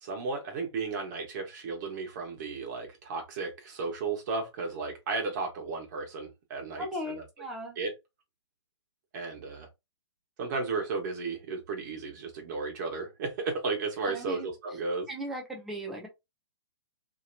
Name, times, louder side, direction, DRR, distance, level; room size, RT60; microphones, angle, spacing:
voice 1, 0.0-7.2 7.8-7.9 9.1-9.7 10.4-15.1, right 4 dB, 40° right, 1.3 m, -34 dB
voice 2, 6.8-7.8 14.0-14.5 15.1-16.1, equal, ahead, 0.5 m, -37 dB
2.9 x 2.7 x 2.7 m
hypercardioid pair, 155°, 15 cm